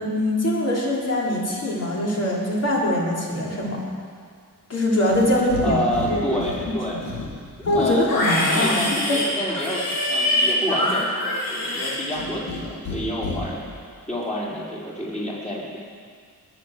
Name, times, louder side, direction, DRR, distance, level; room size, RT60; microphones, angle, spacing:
voice 1, 0.0-3.8 4.7-5.8 6.1-6.4 7.6-9.2, left 1 dB, 45° left, -4 dB, 4.1 m, -22 dB
Livestock farm animals working animals, 5.0-5.7 5.9-6.6 7.0-12.6 12.9-13.4, left 1 dB, 90° left, 3.7 m, -25 dB
voice 2, 5.6-7.0 7.7-8.1 8.5-15.8, equal, 20° left, -6 dB, 4.8 m, -29 dB
20.5 x 7.9 x 7.6 m, 2.1 s
wide cardioid pair, 115°, 35 cm